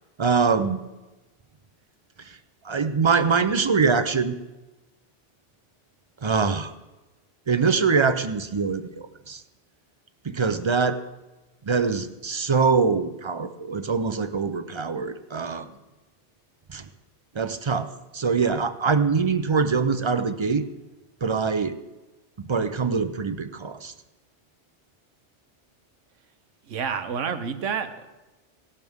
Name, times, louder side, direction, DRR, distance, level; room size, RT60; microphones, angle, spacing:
voice 1, 0.2-0.8 2.2-2.4 2.6-4.4 6.2-6.7 7.5-9.4 10.2-11.0 11.6-15.7 16.7-16.8 17.3-17.9 18.1-20.6 21.2-21.8 22.4-23.9, right 5 dB, 40° right, 11 dB, 0.4 m, -23 dB
voice 2, 26.7-28.1, right 6 dB, 90° right, 10 dB, 1.2 m, -29 dB
17.5 x 12.0 x 3.6 m, 1.1 s
omnidirectional pair, 1.2 m